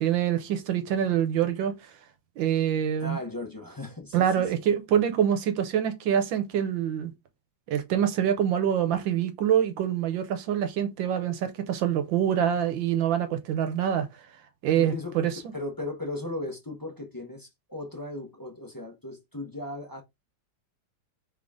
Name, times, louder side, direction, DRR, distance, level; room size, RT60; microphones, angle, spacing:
voice 1, 0.0-1.7 2.4-3.2 4.1-7.1 7.7-14.1 14.6-15.3, right 9 dB, 80° right, 1.5 m, -25 dB
voice 2, 3.0-4.4 14.7-20.0, left 2 dB, 20° left, 0.6 m, -37 dB
3.8 x 3.6 x 3.6 m
omnidirectional pair, 2.1 m